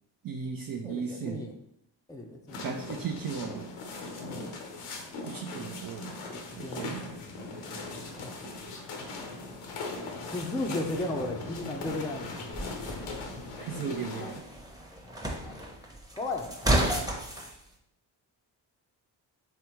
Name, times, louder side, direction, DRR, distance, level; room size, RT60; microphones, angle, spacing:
voice 1, 0.2-1.4 2.6-3.7 5.2-6.1 6.6-7.1 13.6-14.4, right 6 dB, 45° right, 2 dB, 0.5 m, -36 dB
voice 2, 0.8-1.5 2.1-2.6 4.4-4.5 6.6-6.9 7.7-8.3 10.3-12.5 15.0-15.2 15.4-15.7 16.1-17.1, left 2 dB, 10° left, 2 dB, 0.5 m, -35 dB
sound 1, 2.5-14.4, left 3 dB, 80° left, 0.8 m, -39 dB
sound 2, 12.5-17.5, right 1 dB, 10° right, 0.8 m, -32 dB
3.4 x 3.4 x 3.0 m, 0.76 s
supercardioid pair, 45°, 50 cm